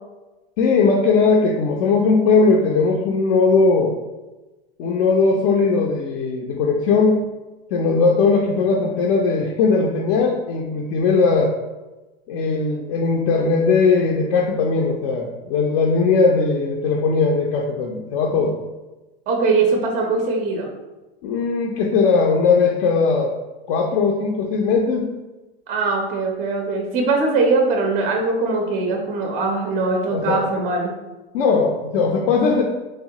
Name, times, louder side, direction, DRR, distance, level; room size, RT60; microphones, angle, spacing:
voice 1, 0.6-3.9 4.8-7.2 7.7-11.5 12.3-18.6 21.2-23.3 23.7-25.1 28.9-29.0 30.1-30.4 31.3-32.6, left 4 dB, 60° left, 0 dB, 0.4 m, -19 dB
voice 2, 19.3-20.7 25.7-30.9, right 3 dB, 30° right, 1 dB, 0.4 m, -21 dB
2.9 x 2.2 x 2.7 m, 1.1 s
supercardioid pair, 120°, 30 cm